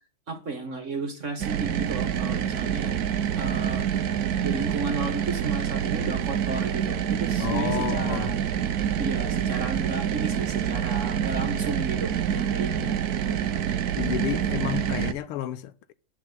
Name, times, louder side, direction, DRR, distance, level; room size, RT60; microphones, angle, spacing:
voice 1, 0.3-2.9 3.3-3.9 4.4-8.4 9.0-13.4, right 3 dB, 35° right, 1.7 m, -33 dB
sound 1, 1.4-15.1, right 9 dB, 60° right, 1.0 m, -27 dB
voice 2, 7.4-8.3 14.0-15.9, left 11 dB, 90° left, 1.7 m, -31 dB
10.0 x 8.2 x 4.0 m
omnidirectional pair, 2.4 m